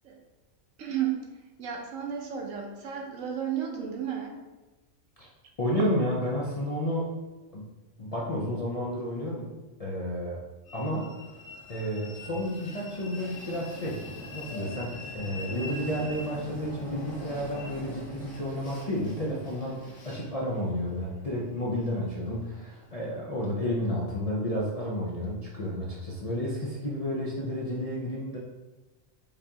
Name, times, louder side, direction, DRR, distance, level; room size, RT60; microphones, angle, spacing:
voice 1, 0.8-1.2 1.6-4.4, right 9 dB, 80° right, 1 dB, 1.2 m, -33 dB
voice 2, 5.6-7.1 7.5-7.7 8.0-9.5 9.8-10.4 10.7-11.2 11.7-14.0 14.3-28.4, equal, 40° left, -4 dB, 0.5 m, -31 dB
Train, 10.7-23.1, left 2 dB, 90° left, 1.6 m, -43 dB
5.1 x 3.5 x 2.8 m, 1.1 s
omnidirectional pair, 1.4 m